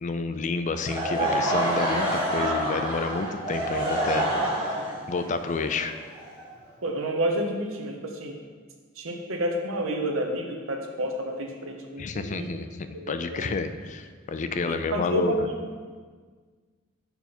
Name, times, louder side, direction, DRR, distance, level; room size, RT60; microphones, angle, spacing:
voice 1, 0.0-4.3 4.9-5.9 12.0-15.3, left 4 dB, 35° left, 9 dB, 0.4 m, -30 dB
Laughter / Crowd, 0.8-6.7, right 1 dB, 25° right, 2.2 m, -27 dB
voice 2, 6.8-8.4 9.0-12.5 12.9-13.5 14.7-15.6, equal, 85° right, 3 dB, 1.0 m, -30 dB
6.9 x 5.6 x 4.3 m, 1.5 s
head